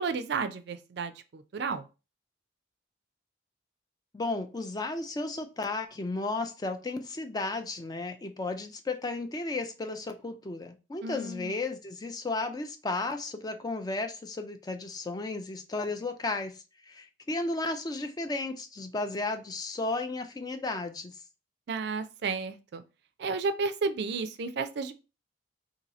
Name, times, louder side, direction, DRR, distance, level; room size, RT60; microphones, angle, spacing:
voice 1, 0.0-1.8 11.0-11.5 21.7-22.8 23.2-24.9, right 4 dB, 60° right, 10 dB, 0.4 m, -32 dB
voice 2, 4.1-16.5 16.9-21.1, left 2 dB, 20° left, 7 dB, 0.4 m, -34 dB
2.7 x 2.7 x 4.0 m, 0.31 s
head